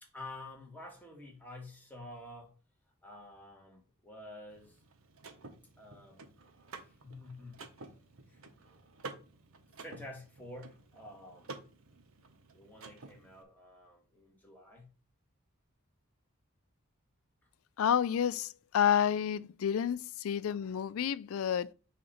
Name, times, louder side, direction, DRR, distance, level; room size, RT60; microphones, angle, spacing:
voice 1, 0.0-2.6 3.0-4.8 5.8-6.2 6.7-7.6 8.3-8.4 9.8-11.6 12.5-14.9, left 1 dB, 10° left, 1.8 m, -49 dB
Car / Mechanisms, 4.5-13.4, right 3 dB, 75° right, 1.1 m, -51 dB
voice 2, 17.8-21.7, left 8 dB, 70° left, 0.4 m, -30 dB
6.4 x 2.9 x 5.6 m
head